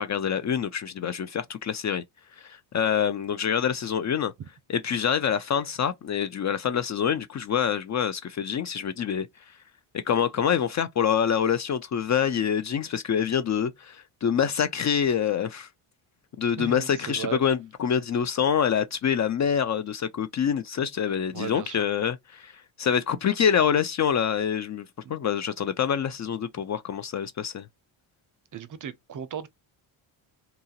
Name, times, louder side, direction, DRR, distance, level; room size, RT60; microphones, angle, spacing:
voice 1, 0.0-2.0 2.4-4.3 4.7-9.3 9.9-15.7 16.4-22.5 22.8-27.7, left 8 dB, 40° left, 0.4 m, -26 dB
voice 2, 16.6-17.4 21.3-21.8 25.0-25.2 28.5-29.5, right 8 dB, 40° right, 0.5 m, -36 dB
2.8 x 2.4 x 2.8 m
supercardioid pair, 70°, 49 cm